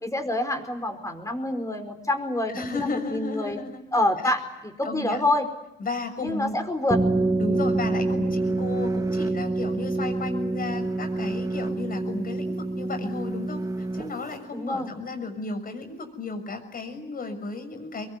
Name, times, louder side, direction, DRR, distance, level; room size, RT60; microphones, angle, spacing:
voice 1, 0.0-3.6 3.9-5.4 6.2-7.0 14.5-14.9, left 1 dB, 15° left, 6 dB, 5.0 m, -27 dB
voice 2, 2.5-3.8 4.2-4.3 4.8-5.2 5.8-6.6 7.4-18.1, left 3 dB, 45° left, 7 dB, 6.6 m, -34 dB
sound 1, 6.9-14.4, right 2 dB, 15° right, 2.0 m, -27 dB
24.0 x 22.5 x 9.9 m, 0.91 s
cardioid pair, 90°, 20 cm